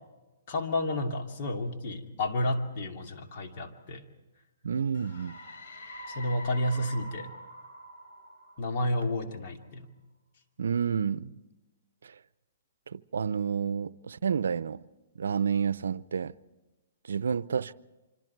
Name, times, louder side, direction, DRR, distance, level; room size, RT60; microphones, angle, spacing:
voice 1, 0.5-4.0 6.1-7.3 8.6-9.9, left 1 dB, 45° left, 2.7 m, -31 dB
voice 2, 4.6-5.4 10.6-11.4 12.0-12.1 12.9-14.8 15.2-16.3 17.1-17.7, right 7 dB, 85° right, 0.6 m, -30 dB
sound 1, 4.9-9.5, equal, 60° left, 4.4 m, -46 dB
26.5 x 25.5 x 4.6 m
hypercardioid pair, 150°, 0 cm